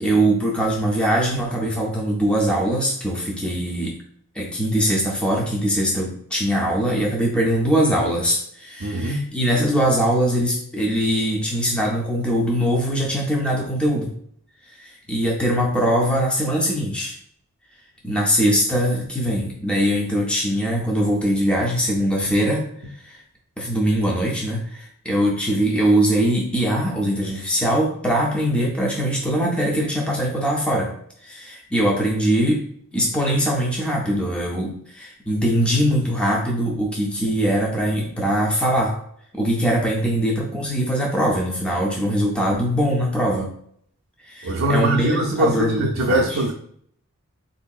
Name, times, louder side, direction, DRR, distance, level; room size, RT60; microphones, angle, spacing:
voice 1, 0.0-4.0 4.3-14.1 14.7-17.1 18.0-22.7 22.9-23.2 23.6-30.9 31.2-32.6 32.9-38.9 39.3-43.5 44.2-46.4, equal, 5° left, -3 dB, 0.5 m, -22 dB
voice 2, 8.8-9.3 44.4-46.5, right 1 dB, 65° right, -2 dB, 0.4 m, -22 dB
3.8 x 2.6 x 2.3 m, 0.65 s
head